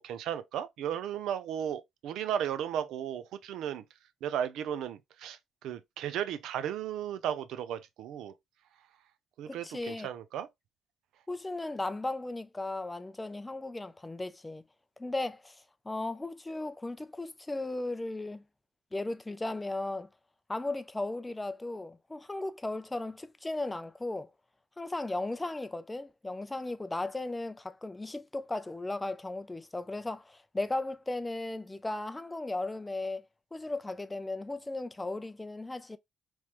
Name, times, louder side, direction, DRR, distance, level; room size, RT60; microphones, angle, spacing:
voice 1, 0.0-3.8 4.2-8.3 9.4-10.5, right 9 dB, 85° right, 0.4 m, -35 dB
voice 2, 9.5-10.1 11.3-14.6 15.0-18.4 18.9-20.1 20.5-24.3 24.8-33.2 33.5-36.0, left 2 dB, 15° left, 0.3 m, -36 dB
3.3 x 3.0 x 2.3 m
cardioid pair, 115°, 0 cm